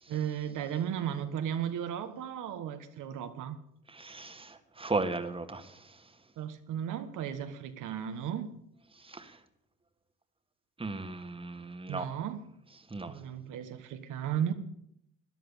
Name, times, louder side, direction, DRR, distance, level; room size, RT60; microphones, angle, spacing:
voice 1, 0.1-3.6 6.4-8.6 11.9-12.5 13.1-14.5, right 9 dB, 85° right, 8 dB, 1.4 m, -35 dB
voice 2, 3.9-5.8 9.0-9.4 10.8-12.1 12.9-13.1, right 3 dB, 20° right, 8 dB, 1.7 m, -36 dB
13.0 x 10.5 x 8.5 m, 0.75 s
cardioid pair, 90°, 30 cm